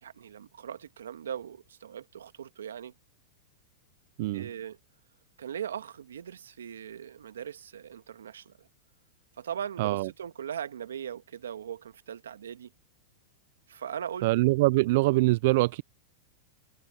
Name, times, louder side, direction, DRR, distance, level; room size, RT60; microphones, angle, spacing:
voice 1, 0.0-2.9 4.3-4.8 5.4-8.7 9.4-12.7 13.7-14.3, right 8 dB, 85° right, 1.7 m, -39 dB
voice 2, 9.8-10.1 14.2-15.8, right 21 dB, 60° right, 0.5 m, -24 dB
hypercardioid pair, 115°, 0 cm